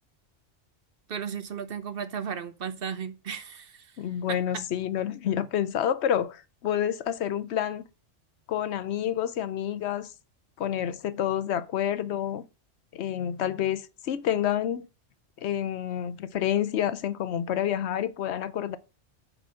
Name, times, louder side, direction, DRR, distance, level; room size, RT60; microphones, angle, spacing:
voice 1, 1.1-4.0 4.3-4.4, right 7 dB, 55° right, 0.9 m, -35 dB
voice 2, 4.0-7.8 8.5-10.1 10.6-12.5 12.9-14.9 15.4-18.8, left 10 dB, 70° left, 0.9 m, -28 dB
7.9 x 4.0 x 6.3 m
omnidirectional pair, 1.2 m